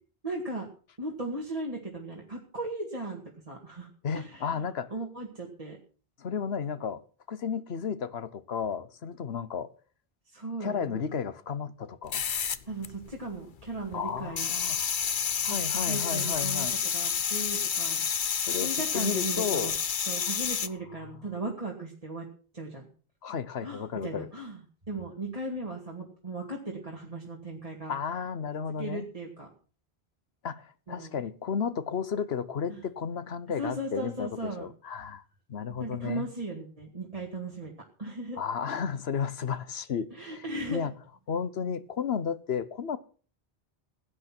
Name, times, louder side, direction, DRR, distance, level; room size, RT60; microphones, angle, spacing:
voice 1, 0.2-0.7 1.0-3.9 4.1-5.8 10.3-11.0 12.7-14.5 15.5-16.7 16.9-18.1 18.6-19.7 20.1-22.3 22.5-22.9 23.6-24.6 24.9-27.9 28.8-29.5 30.9-31.2 32.7-32.8 33.6-34.7 35.8-37.7 38.0-38.4 40.1-40.9, right 2 dB, 35° right, 2.2 m, -37 dB
voice 2, 4.0-4.9 6.2-7.0 7.3-9.7 10.6-12.2 13.9-14.8 15.4-16.7 18.4-19.7 23.2-24.3 27.9-29.1 30.4-35.2 35.5-36.3 38.4-40.9 41.3-43.0, left 6 dB, 80° left, 1.2 m, -33 dB
sound 1, 12.1-13.4 13.6-20.7, left 7 dB, 55° left, 0.9 m, -29 dB
16.5 x 9.5 x 6.1 m
omnidirectional pair, 1.0 m